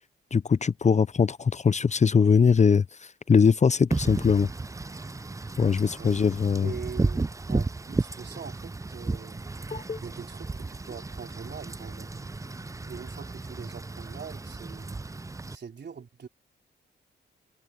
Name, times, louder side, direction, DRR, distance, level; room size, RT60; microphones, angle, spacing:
voice 1, 0.3-2.8 3.3-4.5 5.6-6.7 9.7-10.0, left 6 dB, 35° left, 0.6 m, -21 dB
Wind / Rain, 3.9-15.6, right 3 dB, 15° right, 0.5 m, -33 dB
voice 2, 6.0-6.3 6.6-9.5 10.0-12.3 12.9-15.1 15.5-16.3, right 6 dB, 60° right, 3.9 m, -43 dB
cardioid pair, 60°, 20 cm